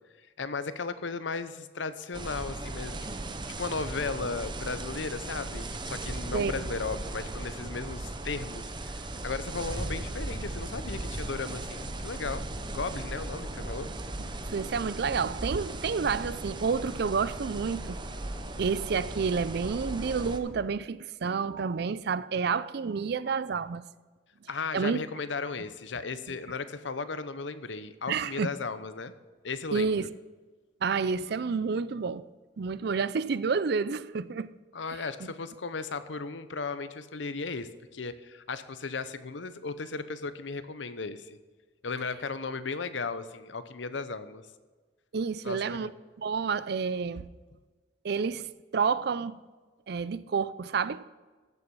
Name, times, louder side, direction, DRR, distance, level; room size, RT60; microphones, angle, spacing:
voice 1, 0.4-3.0 3.6-12.4 12.7-13.9 24.5-29.1 29.4-29.9 34.7-41.4 41.8-44.4 45.4-45.9, left 4 dB, 85° left, 0.8 m, -36 dB
sound 1, 2.1-20.4, right 2 dB, 25° right, 0.8 m, -37 dB
sound 2, 9.1-20.7, equal, 50° left, 2.2 m, -49 dB
voice 2, 14.5-18.0 18.6-23.8 24.7-25.0 26.3-26.4 28.1-28.5 29.7-30.1 30.8-32.3 32.6-34.5 35.2-35.3 45.1-45.9 46.2-47.3 48.0-49.4 49.9-51.0, right 5 dB, 60° right, 0.4 m, -29 dB
15.0 x 7.1 x 5.4 m
head